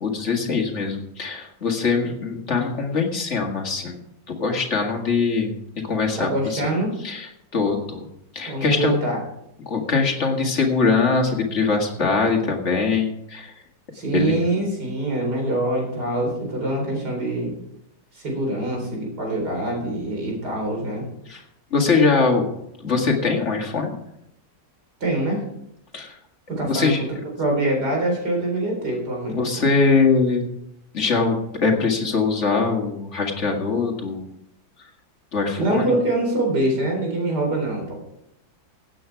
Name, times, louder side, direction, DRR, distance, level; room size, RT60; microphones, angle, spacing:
voice 1, 0.0-4.0 4.3-5.5 5.8-6.6 7.0-8.1 8.3-9.0 9.6-13.5 14.1-14.3 21.3-21.4 21.7-22.5 22.8-23.9 25.9-26.2 26.6-27.0 29.3-30.4 30.9-34.2 35.3-35.9, left 4 dB, 45° left, 2 dB, 2.3 m, -22 dB
voice 2, 6.2-6.9 8.5-9.2 13.9-17.5 18.1-21.0 25.0-25.4 26.5-29.7 35.6-38.0, right 1 dB, 70° right, 0 dB, 4.6 m, -24 dB
16.5 x 8.6 x 4.6 m, 0.80 s
omnidirectional pair, 1.8 m